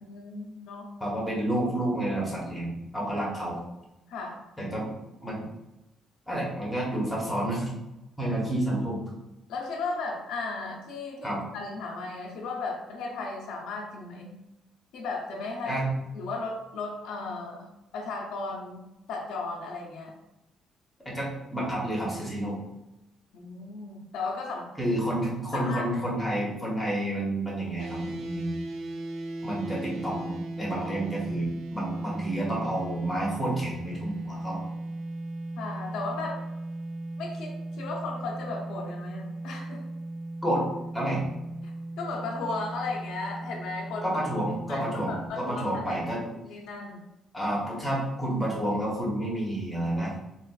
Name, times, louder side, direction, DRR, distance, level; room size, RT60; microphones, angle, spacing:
voice 1, 0.0-0.9 4.1-4.4 9.5-14.3 14.9-15.8 16.1-17.7 17.9-20.1 23.3-24.7 25.5-25.9 35.6-36.4 37.2-39.8 42.0-44.2 44.7-46.0 46.4-47.0, left 3 dB, 90° left, -1 dB, 0.6 m, -35 dB
voice 2, 1.0-3.6 4.6-4.9 5.2-5.4 6.3-7.7 8.2-9.0 11.2-11.4 15.6-15.9 21.0-22.6 24.8-28.6 29.4-34.6 40.4-40.7 40.9-41.2 44.0-46.2 47.3-50.1, right 1 dB, 5° left, -5 dB, 1.0 m, -30 dB
sound 1, 27.8-45.3, right 2 dB, 80° right, 0.4 m, -37 dB
4.0 x 2.4 x 2.3 m, 0.93 s
cardioid pair, 135°, 0 cm